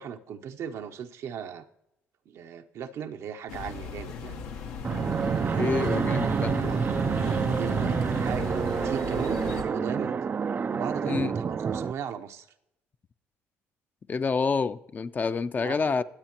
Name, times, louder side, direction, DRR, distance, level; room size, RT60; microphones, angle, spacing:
voice 1, 0.0-1.7 2.3-4.4 5.4-6.8 7.2-10.2 10.7-12.5 15.6-16.0, right 8 dB, 65° right, 0.8 m, -37 dB
sound 1, 3.5-9.6, left 6 dB, 80° left, 1.1 m, -37 dB
Fixed-wing aircraft airplane, 4.8-11.9, right 6 dB, 35° right, 0.4 m, -28 dB
voice 2, 5.5-6.5 11.1-11.3 14.1-16.0, left 4 dB, 35° left, 0.5 m, -27 dB
22.5 x 8.2 x 2.9 m
supercardioid pair, 75°, 5 cm